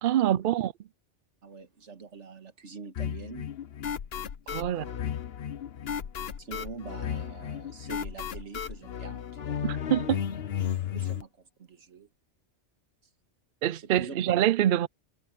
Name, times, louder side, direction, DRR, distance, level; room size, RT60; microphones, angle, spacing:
voice 1, 0.0-0.7 4.5-4.8 9.6-10.2 13.6-14.9, right 11 dB, 60° right, 0.6 m, -25 dB
voice 2, 1.4-3.5 4.6-4.9 6.4-9.7 10.9-12.1 13.7-14.2, right 5 dB, 80° right, 1.9 m, -45 dB
sound 1, 3.0-11.2, left 9 dB, 60° left, 1.0 m, -34 dB
omnidirectional pair, 1.2 m